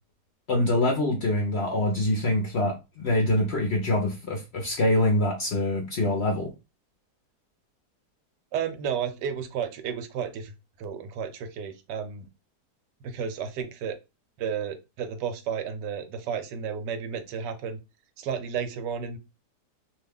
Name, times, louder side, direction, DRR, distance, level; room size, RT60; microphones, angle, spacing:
voice 1, 0.5-6.5, left 1 dB, 55° left, 0.7 m, -25 dB
voice 2, 8.5-10.5 10.8-12.3 13.0-14.0 14.4-17.8 18.2-19.2, right 7 dB, 85° right, 1.2 m, -32 dB
2.8 x 2.3 x 3.4 m
omnidirectional pair, 1.8 m